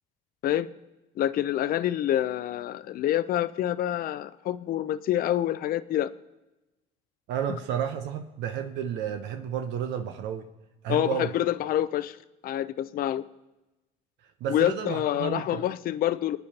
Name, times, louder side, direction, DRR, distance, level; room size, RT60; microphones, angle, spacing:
voice 1, 1.2-6.1 10.9-12.2 12.4-13.2 14.5-16.4, left 12 dB, 55° left, 14 dB, 0.6 m, -27 dB
voice 2, 7.3-10.5 10.8-11.3 14.4-15.6, right 8 dB, 75° right, 5 dB, 0.9 m, -31 dB
27.5 x 9.2 x 2.9 m, 1.0 s
supercardioid pair, 100°, 18 cm